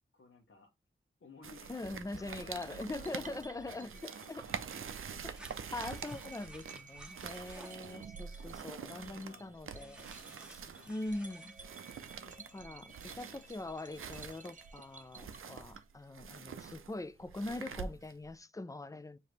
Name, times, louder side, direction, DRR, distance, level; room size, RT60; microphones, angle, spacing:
voice 1, 0.1-0.7 1.2-5.1 5.4-5.5 7.6-8.0 8.3-10.9 12.3-13.3 17.6-18.0, left 3 dB, 70° left, 1.0 m, -58 dB
sound 1, 1.4-18.3, right 6 dB, 85° right, 0.5 m, -46 dB
voice 2, 1.7-4.4 5.2-5.4 5.7-10.1 10.5-10.6 10.9-11.6 12.3-19.2, left 2 dB, 15° left, 0.4 m, -42 dB
sound 2, 2.6-16.0, right 4 dB, 40° right, 0.7 m, -56 dB
sound 3, 5.3-7.9 9.7-11.5, equal, 5° right, 1.3 m, -55 dB
4.9 x 2.9 x 3.1 m
cardioid pair, 50°, 21 cm